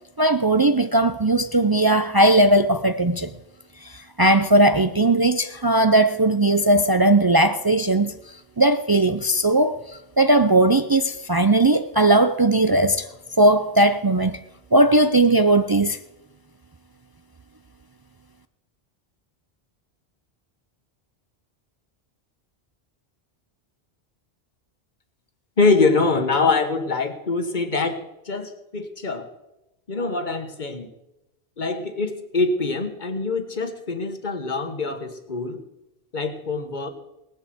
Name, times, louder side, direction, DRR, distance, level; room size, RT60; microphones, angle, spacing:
voice 1, 0.2-3.3 3.8-13.1 13.4-14.4 14.7-16.0, right 1 dB, 35° right, 0.4 m, -18 dB
voice 2, 25.6-29.3 29.9-30.9 31.6-35.6 36.1-36.9, left 3 dB, 45° left, 1.5 m, -24 dB
18.0 x 8.1 x 7.8 m
omnidirectional pair, 1.1 m